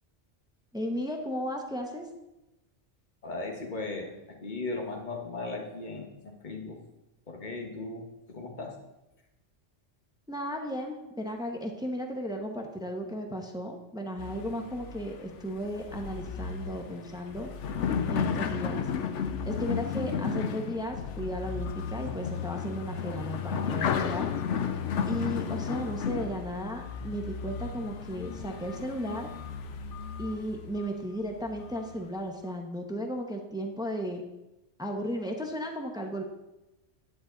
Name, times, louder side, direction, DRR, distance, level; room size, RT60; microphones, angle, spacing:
voice 1, 0.7-2.1 10.3-17.5 18.1-18.9 19.5-24.3 25.0-29.3 30.2-34.2 34.8-36.2, equal, 5° right, 3 dB, 1.0 m, -35 dB
voice 2, 3.2-6.8 7.3-8.8, left 3 dB, 40° left, 2 dB, 1.6 m, -37 dB
sound 1, 14.2-30.9 31.4-31.9, left 6 dB, 90° left, 1.1 m, -33 dB
11.0 x 9.5 x 4.0 m, 0.99 s
omnidirectional pair, 1.2 m